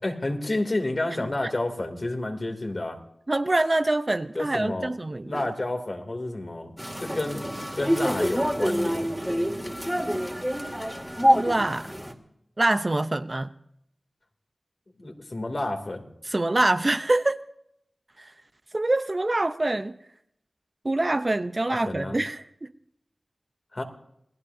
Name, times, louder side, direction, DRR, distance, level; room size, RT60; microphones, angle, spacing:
voice 1, 0.0-3.0 4.3-4.9 5.2-6.7 7.0-7.5 7.8-9.1 15.0-16.1 21.7-22.2 23.7-23.8, left 2 dB, 50° left, 3 dB, 2.8 m, -30 dB
voice 2, 3.3-5.4 11.3-11.9 12.6-13.5 16.3-17.4 18.2-18.3 18.7-20.0 20.8-22.7, right 2 dB, 40° right, 11 dB, 0.7 m, -25 dB
sound 1, 6.8-12.1, equal, ahead, 2.5 m, -26 dB
28.5 x 18.5 x 2.8 m, 0.77 s
wide cardioid pair, 55°, 0 cm